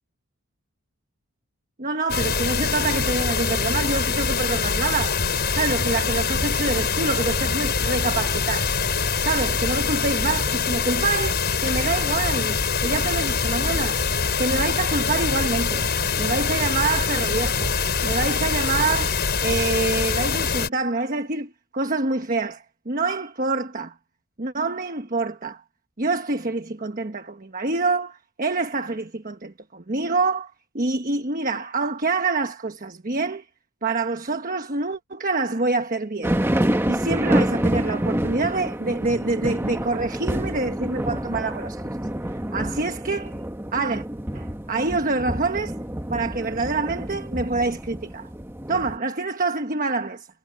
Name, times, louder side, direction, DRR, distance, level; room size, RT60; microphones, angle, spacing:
voice 1, 1.8-5.2 5.6-8.7 9.2-14.0 14.4-15.9 16.2-17.7 18.0-23.9 24.4-25.6 26.0-33.5 33.8-36.4 36.9-42.0 42.5-43.4 43.7-44.1 44.3-45.8 46.1-48.3 48.7-50.3, right 3 dB, 40° right, 1.2 m, -26 dB
sound 1, 2.1-20.7, left 5 dB, 45° left, 5.8 m, -24 dB
sound 2, 36.2-49.0, right 1 dB, 10° right, 1.3 m, -27 dB
head